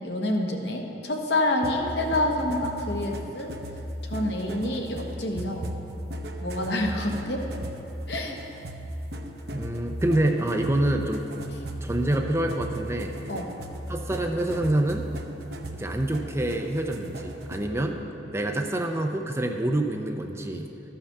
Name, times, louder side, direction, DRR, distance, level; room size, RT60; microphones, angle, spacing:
voice 1, 0.0-3.5 4.0-5.7 6.4-7.4 8.1-8.4 13.3-13.5, left 1 dB, 70° left, 1 dB, 1.2 m, -27 dB
sound 1, 1.6-17.8, right 1 dB, 60° right, 0.7 m, -37 dB
voice 2, 9.5-11.3 11.8-13.2 13.9-15.1 15.7-18.0 18.3-20.7, right 1 dB, 15° right, 4 dB, 0.5 m, -26 dB
12.5 x 5.8 x 6.6 m, 2.9 s
head